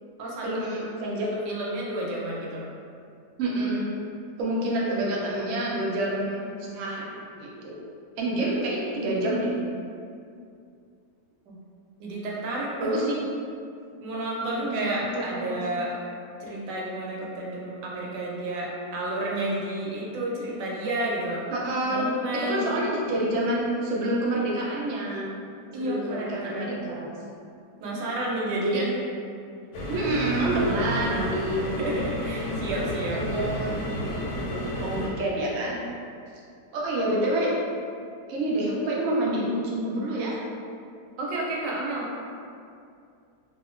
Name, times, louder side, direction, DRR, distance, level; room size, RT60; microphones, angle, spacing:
voice 1, 0.4-1.3 3.4-3.9 4.4-7.1 7.4-7.8 8.2-9.5 12.8-13.1 14.5-15.6 21.5-22.0 22.3-25.3 25.7-27.2 28.6-28.8 29.9-32.0 33.1-35.8 36.7-37.5 38.3-40.4, right 1 dB, 70° right, -4 dB, 0.7 m, -28 dB
voice 2, 1.5-2.6 11.5-11.6 12.0-13.2 14.0-15.9 16.4-21.4 21.8-22.7 25.7-26.8 27.8-28.8 31.8-33.3 41.2-42.2, right 1 dB, 85° right, -4 dB, 1.2 m, -31 dB
sound 1, 29.7-35.1, equal, 70° left, 1.0 m, -31 dB
2.7 x 2.3 x 2.4 m, 2.4 s
omnidirectional pair, 1.8 m